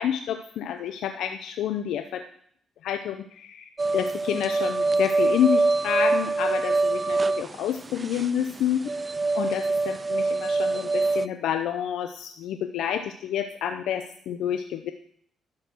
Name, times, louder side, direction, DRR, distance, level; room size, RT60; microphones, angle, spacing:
voice 1, 0.0-2.2 2.8-9.0 9.4-14.9, left 9 dB, 80° left, 7 dB, 0.6 m, -29 dB
sound 1, 3.8-11.3, right 3 dB, 25° right, 0.3 m, -24 dB
11.5 x 6.7 x 6.1 m, 0.64 s
cardioid pair, 90°, 0 cm